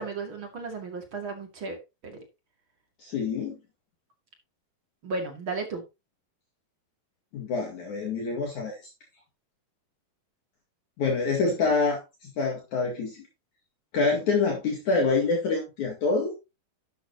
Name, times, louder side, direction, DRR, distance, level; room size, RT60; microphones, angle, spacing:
voice 1, 0.0-2.2 5.0-5.8, right 3 dB, 40° right, 4 dB, 2.5 m, -34 dB
voice 2, 3.0-3.6 7.3-8.8 11.0-13.1 13.9-16.3, left 4 dB, 60° left, 0 dB, 3.2 m, -26 dB
12.0 x 9.3 x 2.9 m, 0.26 s
omnidirectional pair, 4.2 m